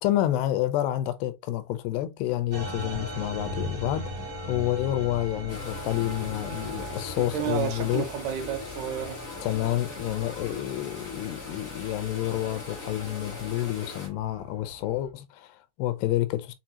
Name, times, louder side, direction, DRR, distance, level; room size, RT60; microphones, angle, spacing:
voice 1, 0.0-4.1 4.5-8.1 9.4-16.5, left 14 dB, 85° left, 2.6 m, -29 dB
sound 1, 2.5-15.1, equal, 55° right, 0.9 m, -39 dB
sound 2, 5.5-14.1, left 4 dB, 60° left, 0.8 m, -41 dB
voice 2, 7.2-9.2, right 10 dB, 75° right, 2.9 m, -31 dB
7.1 x 2.4 x 2.8 m
omnidirectional pair, 4.8 m